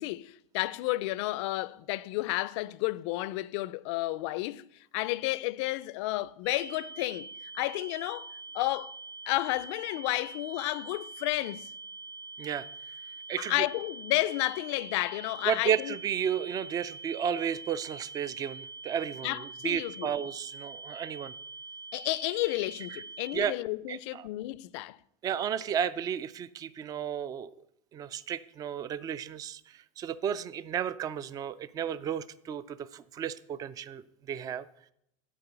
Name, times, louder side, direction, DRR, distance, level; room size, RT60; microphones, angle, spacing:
voice 1, 0.0-4.6 4.9-8.9 9.3-11.7 13.4-15.9 19.2-20.1 21.9-25.0, left 19 dB, 60° left, 0.5 m, -32 dB
sound 1, 6.4-23.4, right 3 dB, 65° right, 2.9 m, -44 dB
voice 2, 13.3-13.6 15.5-21.3 23.3-23.5 23.9-24.3 25.2-27.5 27.9-34.7, right 8 dB, 20° right, 0.4 m, -33 dB
12.0 x 5.1 x 8.1 m
supercardioid pair, 150°, 16 cm